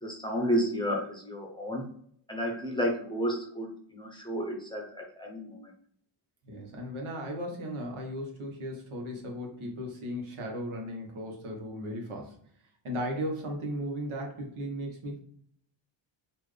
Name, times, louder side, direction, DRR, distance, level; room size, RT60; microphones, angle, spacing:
voice 1, 0.0-1.9 2.3-5.7, equal, 10° left, 0 dB, 0.7 m, -32 dB
voice 2, 6.4-12.4 12.8-15.2, equal, 80° right, 0 dB, 1.3 m, -36 dB
4.3 x 2.6 x 3.2 m, 0.62 s
wide cardioid pair, 135°, 49 cm